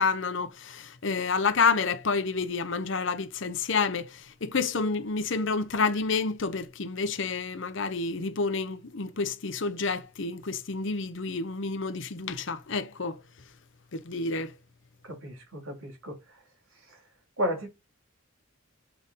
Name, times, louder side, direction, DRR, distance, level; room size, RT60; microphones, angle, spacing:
voice 1, 0.0-13.2 13.9-14.5, left 4 dB, 60° left, 0.8 m, -29 dB
voice 2, 15.1-16.2 17.4-17.7, equal, 80° right, 2.8 m, -32 dB
6.9 x 3.7 x 4.1 m
head